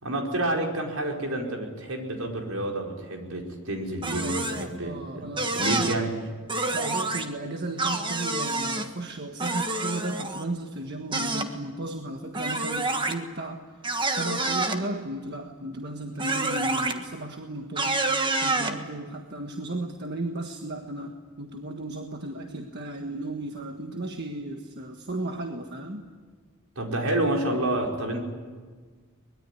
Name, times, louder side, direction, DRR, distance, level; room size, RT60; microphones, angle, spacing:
voice 1, 0.0-6.2 26.7-28.2, right 1 dB, 75° right, 1 dB, 5.0 m, -29 dB
sound 1, 4.0-4.7 5.4-5.9 6.5-7.2 7.8-8.8 9.4-10.4 11.1-11.5 12.3-13.1 13.8-14.8 16.2-16.9 17.8-18.8, right 2 dB, 20° right, 1.5 m, -27 dB
voice 2, 4.0-5.9 6.7-18.0 18.4-26.1, right 2 dB, 50° right, 3 dB, 1.5 m, -35 dB
23.0 x 21.0 x 9.9 m, 1.5 s
head